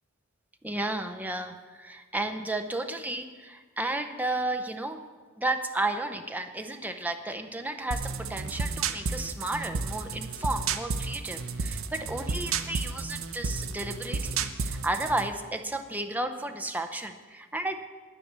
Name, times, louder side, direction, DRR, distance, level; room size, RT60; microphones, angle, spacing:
voice 1, 0.6-5.0 5.4-17.9, right 2 dB, 10° right, 7 dB, 0.6 m, -33 dB
sound 1, 7.9-15.3, right 4 dB, 70° right, 0.7 m, -32 dB
10.0 x 9.3 x 6.7 m, 1.5 s
head